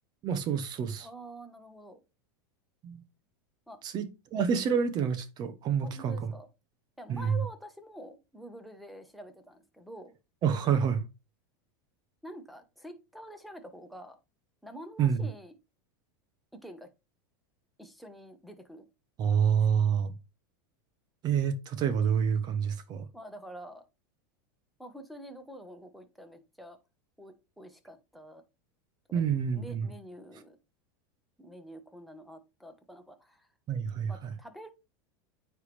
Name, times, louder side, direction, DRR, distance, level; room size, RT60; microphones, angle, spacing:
voice 1, 0.2-1.1 2.8-3.0 3.8-6.3 7.1-7.4 10.4-11.0 15.0-15.3 19.2-20.1 21.2-23.1 29.1-29.9 33.7-34.3, right 7 dB, 35° right, 0.9 m, -28 dB
voice 2, 1.0-2.0 3.7-3.8 5.8-6.5 7.0-10.1 12.2-14.2 14.6-15.5 16.5-16.9 17.8-18.8 23.1-23.8 24.8-26.8 27.2-28.4 29.1-29.2 29.5-30.6 31.4-33.5 34.1-34.7, equal, ahead, 1.1 m, -47 dB
9.3 x 3.4 x 3.3 m
supercardioid pair, 130°, 12 cm